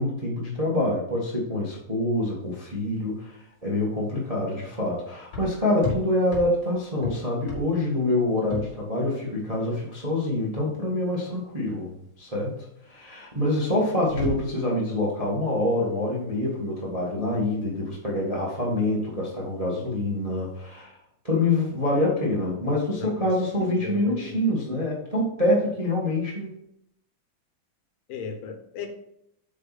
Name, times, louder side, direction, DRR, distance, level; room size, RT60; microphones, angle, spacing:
voice 1, 0.0-12.6 12.9-20.9 21.2-26.5, left 1 dB, 25° right, -3 dB, 0.8 m, -26 dB
sound 1, 2.4-20.6, left 3 dB, 35° left, 2.1 m, -38 dB
voice 2, 23.0-24.4 28.1-28.9, left 5 dB, 75° left, 6 dB, 2.7 m, -36 dB
8.2 x 5.4 x 4.2 m, 0.76 s
omnidirectional pair, 4.1 m